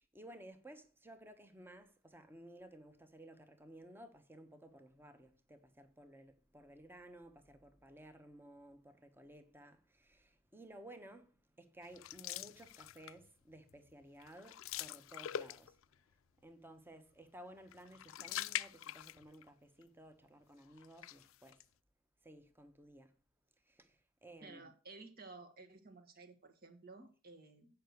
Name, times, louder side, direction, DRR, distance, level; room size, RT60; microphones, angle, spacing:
voice 1, 0.1-15.8 16.4-21.6 22.2-23.2 23.6-24.7, right 1 dB, 10° right, 1.1 m, -56 dB
sound 1, 11.9-13.3 13.7-13.9 14.2-15.9 17.7-19.5 19.8-19.9 20.8-21.6, left 11 dB, 90° left, 0.4 m, -44 dB
voice 2, 24.4-27.7, right 3 dB, 50° right, 1.8 m, -55 dB
8.9 x 5.8 x 6.5 m
head